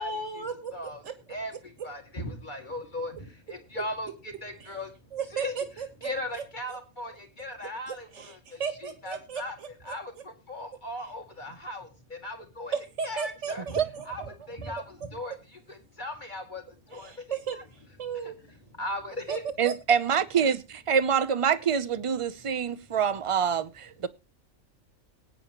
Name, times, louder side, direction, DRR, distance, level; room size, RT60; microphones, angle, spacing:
voice 1, 0.0-1.1 4.6-4.8 5.1-6.4 7.6-9.9 12.7-14.0 16.9-18.4 19.3-19.4 19.6-19.7, right 5 dB, 60° right, 1.7 m, -35 dB
voice 2, 1.8-3.1 3.5-4.1 4.4-4.9 5.3-5.5 6.0-7.1 7.4-8.1 8.8-9.5 9.9-10.1 10.5-11.8 12.2-12.7 13.0-13.6 14.1-14.8 15.1-15.3 16.0-16.6 16.9-17.1 18.8-19.4, left 1 dB, 35° left, 2.3 m, -36 dB
voice 3, 19.6-24.1, right 7 dB, 40° right, 0.4 m, -26 dB
20.5 x 9.3 x 3.0 m
omnidirectional pair, 1.5 m